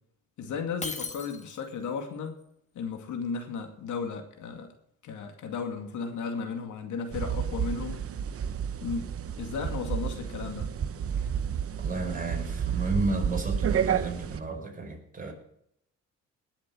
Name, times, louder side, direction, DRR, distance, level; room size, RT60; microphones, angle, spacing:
voice 1, 0.4-2.4 2.7-4.7 5.0-8.0 8.8-9.1 9.4-10.7, left 5 dB, 80° left, 5 dB, 2.3 m, -34 dB
Shatter, 0.8-1.8, left 4 dB, 25° left, 1.6 m, -37 dB
sound 1, 7.1-14.4, right 8 dB, 50° right, 1.0 m, -31 dB
voice 2, 11.8-15.3, right 3 dB, 25° right, 1 dB, 5.2 m, -32 dB
19.5 x 7.3 x 6.2 m, 0.74 s
cardioid pair, 90°, 30 cm